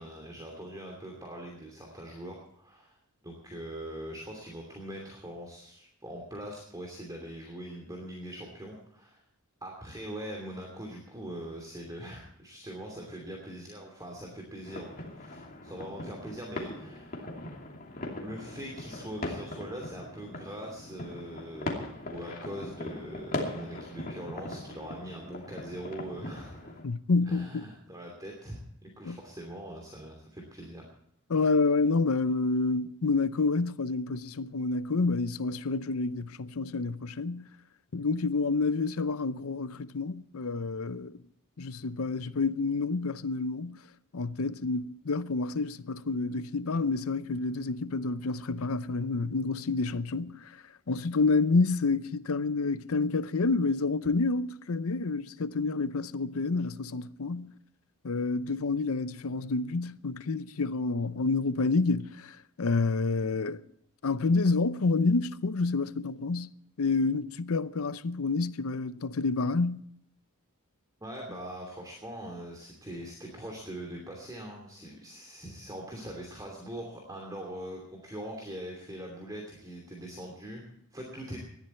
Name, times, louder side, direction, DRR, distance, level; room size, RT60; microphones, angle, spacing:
voice 1, 0.0-3.0 3.2-9.2 9.6-17.3 18.2-26.8 27.3-30.9 71.0-80.6 80.9-81.4, right 1 dB, 15° right, 2.8 m, -42 dB
sound 1, 14.7-26.8, left 1 dB, 40° left, 2.7 m, -40 dB
voice 2, 26.8-27.7 29.0-29.2 31.3-37.5 37.9-41.2 41.6-43.8 44.1-50.5 50.9-57.5 58.0-63.6 64.0-66.5 66.8-69.8, left 3 dB, 75° left, 0.6 m, -28 dB
19.0 x 13.0 x 4.5 m
head